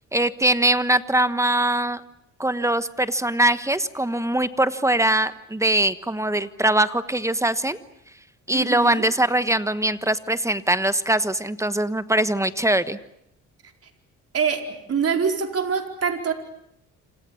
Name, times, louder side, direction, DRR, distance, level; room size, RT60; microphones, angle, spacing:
voice 1, 0.1-2.0 2.4-7.8 8.5-13.0, right 1 dB, 10° right, 12 dB, 1.2 m, -22 dB
voice 2, 8.5-9.0 14.3-14.6 14.9-16.3, right 6 dB, 50° right, 4 dB, 4.7 m, -24 dB
27.5 x 26.5 x 7.2 m, 0.77 s
cardioid pair, 90°, 30 cm